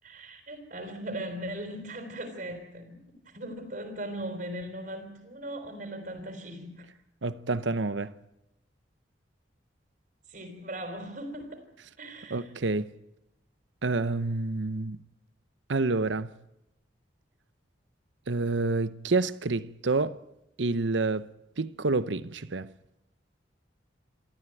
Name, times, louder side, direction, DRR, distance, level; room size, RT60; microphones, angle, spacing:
voice 1, 0.0-6.9 10.3-11.7 12.0-12.5, right 1 dB, 50° right, 4.2 m, -39 dB
voice 2, 7.2-8.1 12.3-12.9 13.8-15.0 15.7-16.3 18.3-20.2 20.6-21.3 21.6-22.7, right 3 dB, 80° right, 0.9 m, -28 dB
28.0 x 13.5 x 9.1 m
head